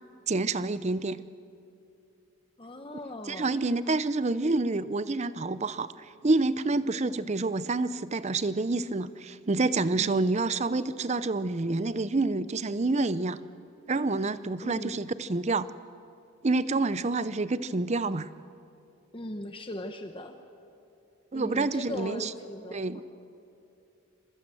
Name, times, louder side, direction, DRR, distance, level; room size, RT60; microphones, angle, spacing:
voice 1, 0.3-1.2 3.3-13.4 13.9-15.7 16.4-18.3 21.3-22.3 22.7-23.0, right 3 dB, 30° right, 15 dB, 0.6 m, -28 dB
voice 2, 2.6-3.6 10.0-10.2 14.6-15.0 19.1-20.3 21.3-23.0, left 1 dB, 25° left, 6 dB, 1.0 m, -39 dB
26.5 x 23.0 x 7.7 m, 2.7 s
head